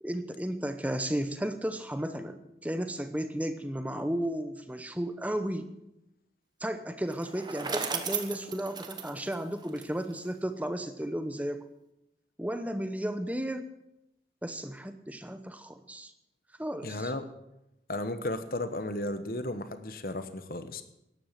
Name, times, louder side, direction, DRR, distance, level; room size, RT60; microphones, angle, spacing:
voice 1, 0.0-5.7 6.6-11.6 12.4-13.7 14.4-16.1 16.6-17.1, right 1 dB, 10° right, 9 dB, 0.8 m, -34 dB
Bicycle, 7.1-10.3, right 5 dB, 25° right, 1.1 m, -36 dB
voice 2, 16.8-17.3 17.9-20.8, left 1 dB, 55° left, 10 dB, 1.1 m, -34 dB
12.5 x 10.5 x 7.4 m, 0.87 s
head